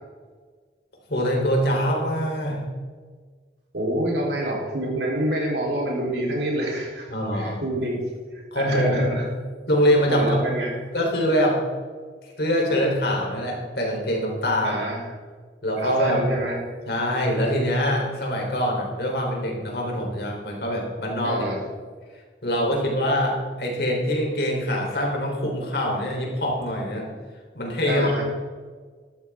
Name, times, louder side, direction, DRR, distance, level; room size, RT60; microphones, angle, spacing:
voice 1, 1.1-2.6 7.1-7.6 8.5-9.2 9.7-10.4 10.9-11.6 12.4-14.9 15.6-16.2 16.9-21.5 22.4-27.1 27.5-28.1, equal, 70° left, -1 dB, 3.8 m, -24 dB
voice 2, 3.7-8.0 8.3-9.3 10.1-10.7 14.6-15.0 15.8-16.6 21.2-21.6 27.9-28.2, right 1 dB, 85° right, -2 dB, 3.8 m, -27 dB
14.0 x 12.0 x 3.7 m, 1.5 s
head